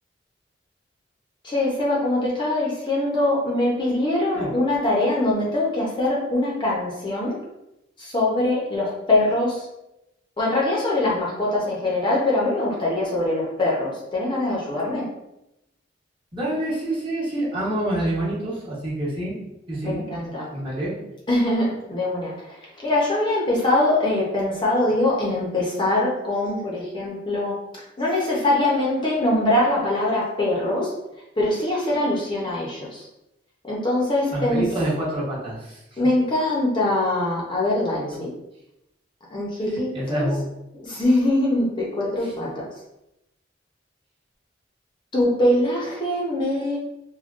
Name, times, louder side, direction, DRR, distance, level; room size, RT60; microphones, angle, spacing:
voice 1, 1.4-7.4 8.0-9.7 10.4-15.1 19.8-20.5 21.3-30.9 31.4-33.1 33.6-34.6 36.0-38.3 39.3-40.3 40.8-42.6 45.1-46.8, left 1 dB, 25° left, -4 dB, 0.6 m, -23 dB
voice 2, 16.3-19.3 19.7-20.2 20.5-20.9 34.3-36.0 39.9-40.4 42.2-42.3, right 1 dB, 30° right, -7 dB, 1.0 m, -27 dB
3.5 x 2.2 x 2.4 m, 0.88 s
head